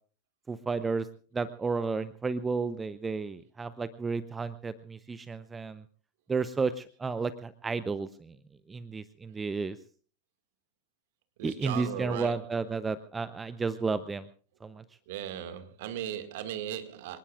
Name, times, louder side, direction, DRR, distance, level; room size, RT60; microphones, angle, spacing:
voice 1, 0.5-1.1 1.3-5.8 6.3-8.3 8.7-9.8 11.4-14.3 14.6-14.8, right 4 dB, 15° right, 0.7 m, -32 dB
voice 2, 11.4-12.5 15.1-17.2, right 10 dB, 50° right, 2.0 m, -37 dB
26.5 x 19.5 x 2.5 m
figure-of-eight pair, 90°, 0 cm